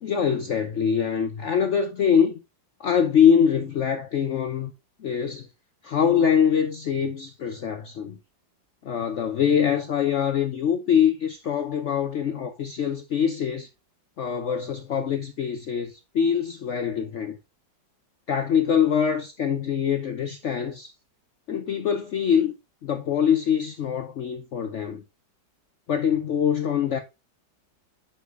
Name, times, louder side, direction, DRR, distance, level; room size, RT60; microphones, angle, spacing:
voice 1, 0.0-2.3 2.8-4.7 5.0-5.5 5.8-8.2 8.8-13.7 14.2-17.4 18.3-20.9 21.5-22.5 22.8-25.0 25.9-27.0, left 8 dB, 70° left, 0.6 m, -23 dB
8.2 x 5.8 x 2.4 m
omnidirectional pair, 2.0 m